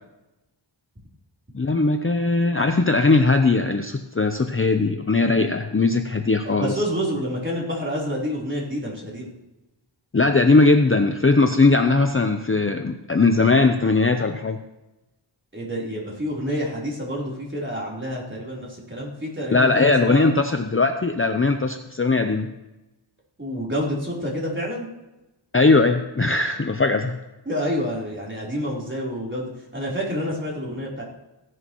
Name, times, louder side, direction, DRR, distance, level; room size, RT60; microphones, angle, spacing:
voice 1, 1.5-6.7 10.1-14.6 19.5-22.5 25.5-27.2, left 3 dB, 25° left, 6 dB, 0.7 m, -19 dB
voice 2, 6.5-9.3 15.5-20.3 23.4-24.9 27.5-31.0, equal, 25° right, -4 dB, 3.7 m, -28 dB
16.0 x 11.0 x 3.1 m, 1.0 s
wide cardioid pair, 75°, 48 cm